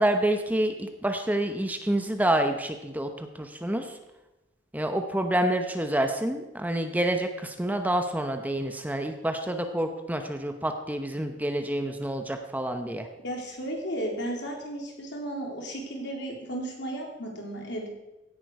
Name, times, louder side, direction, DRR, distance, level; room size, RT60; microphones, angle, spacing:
voice 1, 0.0-3.9 4.7-13.1, right 1 dB, 10° right, 6 dB, 0.9 m, -28 dB
voice 2, 13.2-17.9, right 1 dB, 65° left, 0 dB, 3.5 m, -34 dB
16.0 x 10.5 x 4.8 m, 0.99 s
head